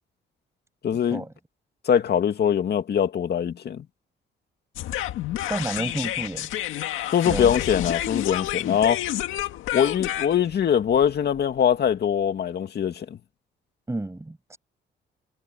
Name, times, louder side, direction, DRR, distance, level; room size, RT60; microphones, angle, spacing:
voice 1, 0.8-1.2 1.8-3.9 7.1-9.0 9.7-13.2, left 8 dB, 55° left, 2.3 m, -22 dB
sound 1, 4.8-11.9, left 13 dB, 85° left, 2.0 m, -30 dB
voice 2, 5.5-6.5 7.2-7.5 13.9-14.6, right 2 dB, 15° right, 6.0 m, -30 dB
cardioid pair, 90°, 20 cm